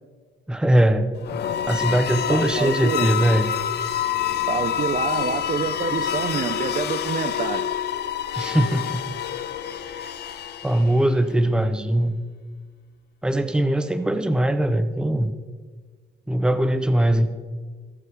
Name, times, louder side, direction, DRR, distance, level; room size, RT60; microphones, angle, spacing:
voice 1, 0.5-1.1 1.7-3.5 8.4-9.0 9.9-10.1 10.6-12.2 13.2-15.3 16.3-17.3, right 1 dB, 5° right, 10 dB, 0.6 m, -21 dB
sound 1, 1.2-11.1, left 9 dB, 55° left, 0.5 m, -27 dB
voice 2, 2.3-3.1 4.5-7.6, right 6 dB, 40° right, 10 dB, 0.6 m, -27 dB
17.0 x 6.9 x 3.4 m, 1.5 s
cardioid pair, 90°, 20 cm